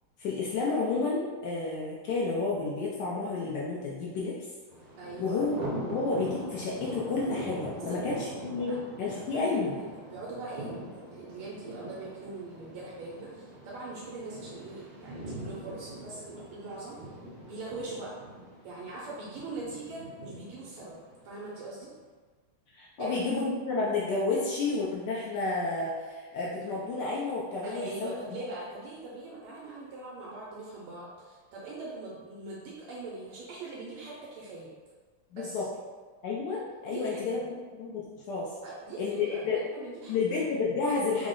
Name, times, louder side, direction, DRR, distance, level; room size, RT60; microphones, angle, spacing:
voice 1, 0.2-4.3 5.2-8.7 9.0-9.8 22.7-28.1 35.3-35.7 36.2-37.4 37.7-38.5 39.0-39.6 40.1-41.3, left 3 dB, 85° left, -5 dB, 0.9 m, -31 dB
Thunder, 4.7-21.7, right 1 dB, 70° right, 1.3 m, -42 dB
voice 2, 5.0-5.5 7.7-8.0 8.7-8.8 9.3-17.1 17.5-18.1 18.6-21.0 21.2-21.9 23.0-23.2 27.6-34.7 35.3-35.7 36.9-37.4 38.6-39.0 39.3-40.2, right 3 dB, 85° right, -5 dB, 1.5 m, -42 dB
3.8 x 2.0 x 3.7 m, 1.4 s
omnidirectional pair, 2.4 m